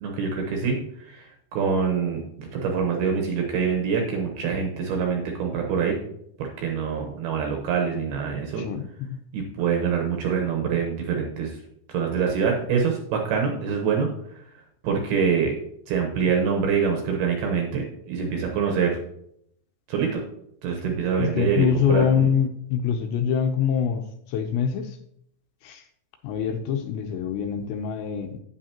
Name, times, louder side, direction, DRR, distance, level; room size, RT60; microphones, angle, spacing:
voice 1, 0.0-6.0 6.4-8.6 9.3-11.5 11.9-14.1 14.8-15.6 15.9-19.0 19.9-20.2 20.6-22.3, right 6 dB, 70° right, 2 dB, 2.6 m, -25 dB
voice 2, 8.6-9.2 21.2-24.0 24.3-25.0 25.6-25.8 26.2-28.4, left 7 dB, 80° left, 5 dB, 2.7 m, -24 dB
9.0 x 8.8 x 2.9 m, 0.70 s
omnidirectional pair, 5.4 m